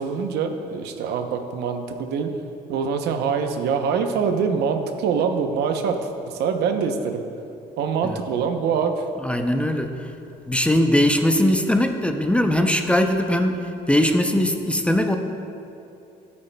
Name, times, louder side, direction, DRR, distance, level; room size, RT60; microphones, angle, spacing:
voice 1, 0.0-2.3 2.7-7.2 7.8-9.1, right 6 dB, 80° right, 6 dB, 0.7 m, -24 dB
voice 2, 9.2-10.1 10.5-15.2, left 1 dB, 5° left, 5 dB, 0.5 m, -20 dB
13.5 x 8.5 x 2.2 m, 2.7 s
cardioid pair, 110°, 17 cm